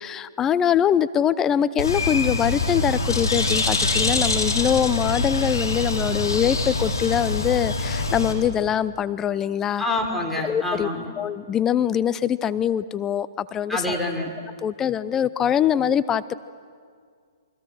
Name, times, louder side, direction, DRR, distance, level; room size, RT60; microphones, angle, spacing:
voice 1, 0.0-9.8 10.4-10.9 11.2-14.0 14.6-16.3, left 9 dB, 20° left, 16 dB, 0.6 m, -23 dB
Bird, 1.8-8.3, left 2 dB, 80° left, 4.5 m, -24 dB
voice 2, 9.8-11.1 13.7-14.3, left 1 dB, ahead, 1 dB, 4.1 m, -26 dB
28.0 x 23.5 x 6.5 m, 2.1 s
figure-of-eight pair, 120°, 2 cm